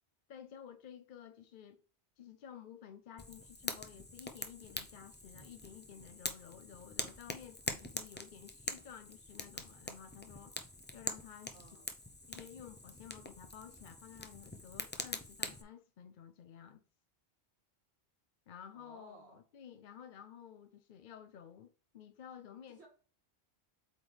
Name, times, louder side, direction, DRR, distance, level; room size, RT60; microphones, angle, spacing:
voice 1, 0.3-1.8 2.2-10.6 10.9-11.9 12.3-16.8 18.5-22.9, left 8 dB, 55° left, 0.6 m, -53 dB
Fire, 3.2-15.6, left 2 dB, 15° left, 0.5 m, -44 dB
voice 2, 11.5-11.9 18.7-19.4 22.7-22.9, right 3 dB, 80° right, 2.1 m, -58 dB
8.0 x 4.3 x 3.3 m
omnidirectional pair, 1.1 m